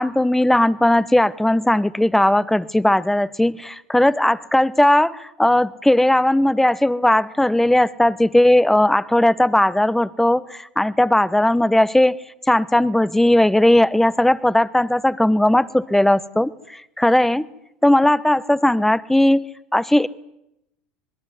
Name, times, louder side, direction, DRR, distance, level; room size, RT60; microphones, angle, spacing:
voice 1, 0.0-12.2 12.5-17.4 17.8-19.5 19.7-20.1, left 1 dB, 5° left, 18 dB, 1.2 m, -17 dB
26.0 x 21.0 x 9.6 m, 0.83 s
hypercardioid pair, 80°, 6 cm